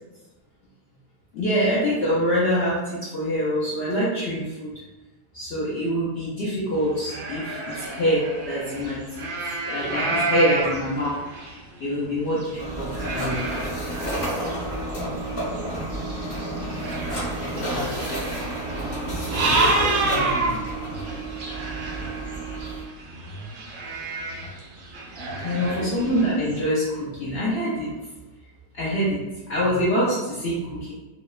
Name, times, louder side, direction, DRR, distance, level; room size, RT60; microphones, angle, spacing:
voice 1, 1.3-4.7 5.3-9.3 9.7-11.2 11.4-13.4 17.5-17.6 25.4-27.9 28.7-29.2 29.5-30.9, equal, 75° left, -7 dB, 0.5 m, -25 dB
sound 1, 6.7-11.9 12.4-26.6, right 2 dB, 65° right, 0.9 m, -30 dB
sound 2, 12.6-22.8, right 1 dB, 30° left, 0.7 m, -30 dB
voice 2, 15.5-15.9 17.5-18.3 19.0-20.7 25.7-26.1, left 3 dB, 55° left, -6 dB, 1.1 m, -35 dB
2.9 x 2.0 x 2.3 m, 1.1 s
omnidirectional pair, 1.6 m